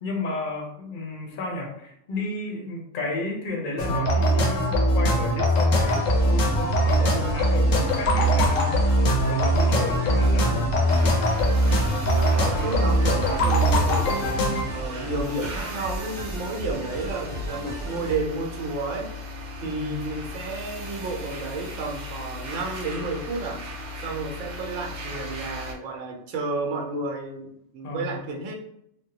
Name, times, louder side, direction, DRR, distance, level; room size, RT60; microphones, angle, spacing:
voice 1, 0.0-8.8 9.3-10.8 15.1-15.4 19.6-20.0 27.8-28.2, left 2 dB, 50° left, 0 dB, 0.8 m, -33 dB
sound 1, 3.8-14.6, equal, 85° left, 1.1 m, -21 dB
sound 2, 5.7-18.2, equal, 5° left, 0.8 m, -35 dB
sound 3, 10.9-25.7, left 2 dB, 50° right, 0.5 m, -37 dB
voice 2, 12.1-14.3 14.7-19.1 19.6-23.6 24.0-28.6, right 3 dB, 75° right, 0 dB, 1.0 m, -31 dB
3.4 x 2.1 x 2.8 m, 0.76 s
omnidirectional pair, 1.3 m